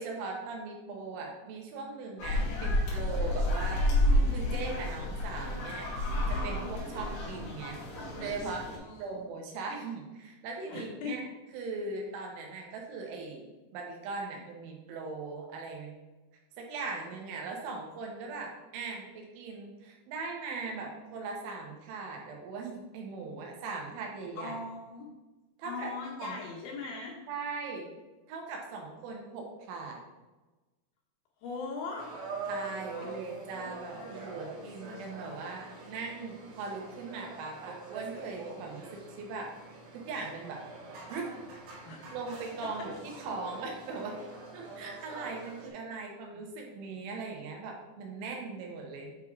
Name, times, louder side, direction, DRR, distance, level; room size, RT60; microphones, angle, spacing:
voice 1, 0.0-3.9 4.3-5.9 6.3-7.8 8.2-8.7 9.0-11.2 11.5-15.9 16.6-24.6 25.6-25.9 26.2-26.4 27.3-27.9 28.3-30.0 32.5-39.5 39.9-40.6 41.1-41.3 42.1-42.9 43.2-44.2 44.5-49.1, right 4 dB, 90° right, 0 dB, 3.7 m, -39 dB
sound 1, 2.2-8.8, left 1 dB, 60° left, 3.3 m, -30 dB
voice 2, 8.8-9.1 10.7-11.2 24.4-25.1 25.6-27.2 31.4-32.1 33.0-34.3 41.9-42.0 42.6-42.9 46.3-46.5, left 4 dB, 80° left, -3 dB, 3.8 m, -41 dB
sound 2, 32.0-45.7, right 3 dB, 70° right, 3.4 m, -44 dB
8.8 x 3.6 x 4.7 m, 1.1 s
omnidirectional pair, 5.3 m